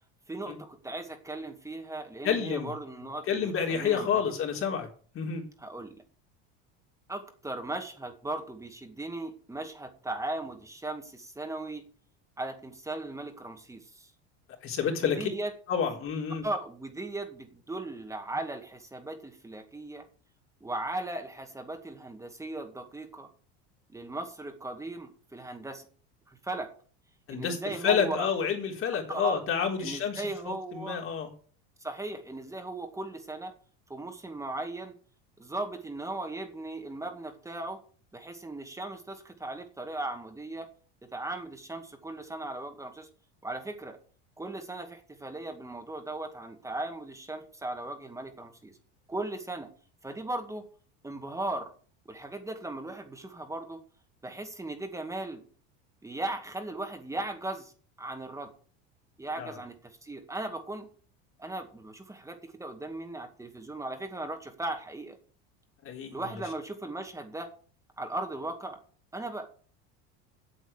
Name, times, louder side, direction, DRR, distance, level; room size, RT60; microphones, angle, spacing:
voice 1, 0.3-4.2 5.6-6.0 7.1-11.8 12.4-14.1 15.0-15.5 16.4-20.0 20.6-23.3 23.9-25.9 26.3-26.7 27.3-28.3 29.1-29.4 29.8-31.0 31.8-33.5 33.9-34.9 35.4-37.8 38.1-40.7 41.1-43.1 43.4-44.0 44.4-48.8 49.1-49.7 50.0-50.6 51.0-51.7 52.1-53.8 54.2-55.4 56.0-57.7 58.0-58.5 59.2-60.9 61.4-65.2 66.1-67.5 68.0-68.8 69.1-69.5, right 2 dB, 10° right, 6 dB, 2.2 m, -37 dB
voice 2, 2.2-2.7 3.3-4.9 5.1-5.4 14.6-15.3 15.7-16.5 27.3-27.6 27.8-31.3 59.4-59.6 65.8-66.4, left 7 dB, 45° left, 2 dB, 4.1 m, -29 dB
8.8 x 8.0 x 8.4 m, 0.43 s
supercardioid pair, 120°, 30 cm